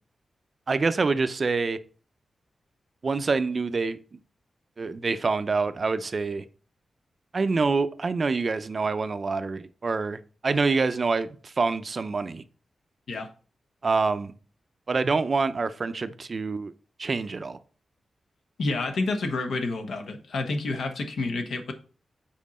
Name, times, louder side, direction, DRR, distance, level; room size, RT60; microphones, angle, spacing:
voice 1, 0.7-1.8 3.0-4.2 4.8-6.4 7.3-12.4 13.8-14.3 14.9-16.7 17.0-17.6, right 4 dB, 45° right, 12 dB, 0.5 m, -26 dB
voice 2, 18.6-21.7, left 3 dB, 80° left, 5 dB, 1.2 m, -29 dB
7.4 x 4.5 x 4.2 m, 0.39 s
wide cardioid pair, 110°, 0 cm